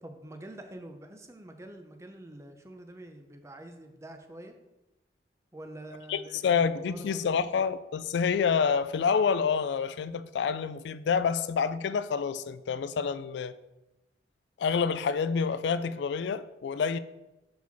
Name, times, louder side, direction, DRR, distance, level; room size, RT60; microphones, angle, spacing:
voice 1, 0.0-4.5 5.5-7.4, right 1 dB, 15° right, 0.6 m, -46 dB
voice 2, 6.1-13.5 14.6-17.0, left 6 dB, 70° left, 0.3 m, -28 dB
6.1 x 4.7 x 4.1 m
head